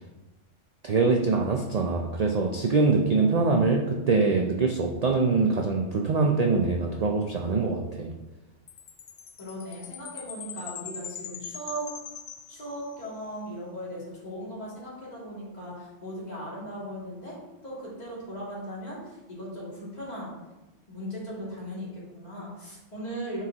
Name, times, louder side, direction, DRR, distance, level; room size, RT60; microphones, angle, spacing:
voice 1, 0.8-8.1, right 4 dB, 50° right, 1 dB, 0.4 m, -24 dB
Chime, 8.7-13.2, left 8 dB, 75° left, 0.9 m, -42 dB
voice 2, 9.4-11.9 12.5-17.3 17.6-20.3 20.9-23.4, equal, 35° left, -8 dB, 2.5 m, -38 dB
9.5 x 4.6 x 2.9 m, 1.1 s
omnidirectional pair, 1.3 m